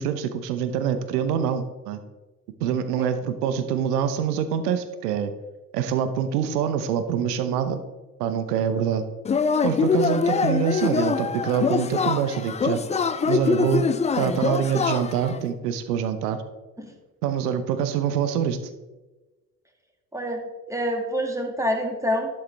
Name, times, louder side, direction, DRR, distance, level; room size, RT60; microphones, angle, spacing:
voice 1, 0.0-2.0 2.6-5.3 5.7-7.8 8.2-9.1 9.6-12.8 13.2-13.9 14.2-16.4 17.2-18.6, right 8 dB, 75° right, 11 dB, 0.9 m, -25 dB
Yell / Cheering, 9.2-15.4, left 5 dB, 15° left, 0.4 m, -24 dB
voice 2, 20.7-22.3, equal, 5° right, 2 dB, 2.1 m, -26 dB
11.5 x 7.6 x 3.4 m, 1.1 s
hypercardioid pair, 60°, 47 cm